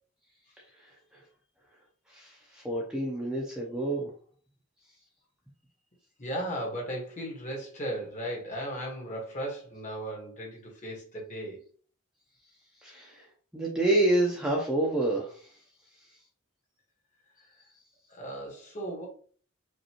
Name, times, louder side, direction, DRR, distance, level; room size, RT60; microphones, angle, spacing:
voice 1, 2.1-4.1 12.8-13.2 13.5-15.3, right 1 dB, 5° right, 0.7 m, -28 dB
voice 2, 6.2-11.6 18.1-19.1, right 1 dB, 35° left, 1.5 m, -36 dB
5.2 x 2.6 x 3.0 m
head